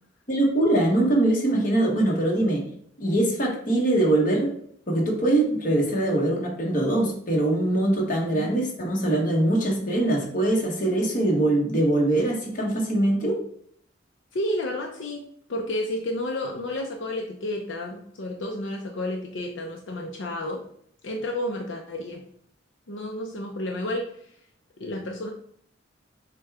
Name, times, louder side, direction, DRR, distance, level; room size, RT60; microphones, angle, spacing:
voice 1, 0.3-2.6 3.0-4.5 4.9-13.4, right 1 dB, 45° left, -2 dB, 1.2 m, -22 dB
voice 2, 8.2-8.5 14.3-15.2 15.5-20.6 21.0-22.2 22.9-24.1 24.8-25.3, left 1 dB, 80° left, 1 dB, 0.6 m, -31 dB
6.4 x 2.3 x 3.5 m, 0.66 s
head